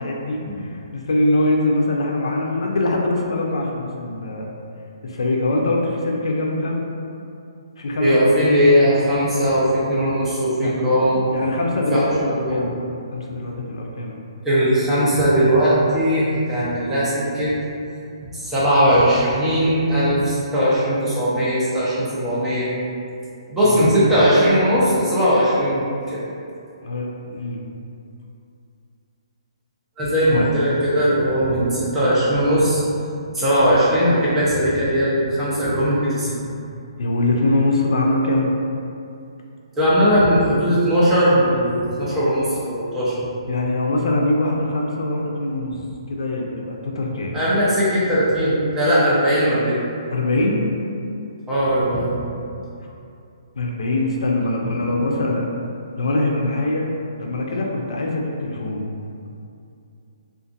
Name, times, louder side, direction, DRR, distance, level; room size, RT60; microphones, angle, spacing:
voice 1, 0.0-4.5 5.0-6.8 7.8-9.0 10.6-10.7 11.3-12.7 13.1-14.2 23.6-23.9 26.8-27.6 30.3-30.4 37.0-38.5 43.5-45.8 46.1-47.4 50.1-50.6 53.5-55.5 55.9-56.9 57.2-58.9, left 2 dB, 75° left, 0 dB, 0.4 m, -23 dB
voice 2, 8.0-11.3 11.9-12.0 12.4-12.6 14.4-17.5 18.3-22.7 23.5-26.2 30.0-32.8 33.3-36.4 39.8-43.3 47.3-49.8 51.5-52.2, equal, 10° right, -10 dB, 0.6 m, -19 dB
2.5 x 2.4 x 2.5 m, 2.5 s
hypercardioid pair, 155°, 3 cm